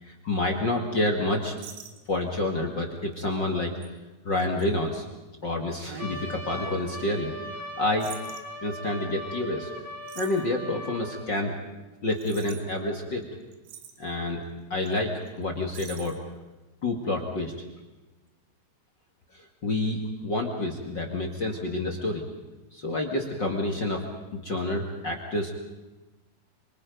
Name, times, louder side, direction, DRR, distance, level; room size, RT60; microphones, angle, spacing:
voice 1, 0.0-1.5 2.1-3.8 4.2-5.0 5.4-8.1 8.6-9.7 10.1-11.6 12.0-13.2 14.0-14.4 14.7-16.2 16.8-17.5 19.3-22.2 22.7-24.0 24.3-25.5, left 2 dB, 40° left, 2 dB, 1.7 m, -28 dB
sound 1, 1.6-2.4 3.0-3.2 3.8-3.9 4.4-4.7 5.9-6.9 8.0-8.4 10.1-10.5 12.1-12.6 13.2-13.3 13.5-14.0 14.9-15.0 15.3-15.4 15.7-16.2, right 7 dB, 85° right, 4.1 m, -43 dB
Trumpet, 6.0-11.3, equal, 15° left, 2.1 m, -39 dB
27.0 x 24.5 x 5.3 m, 1.1 s
omnidirectional pair, 4.9 m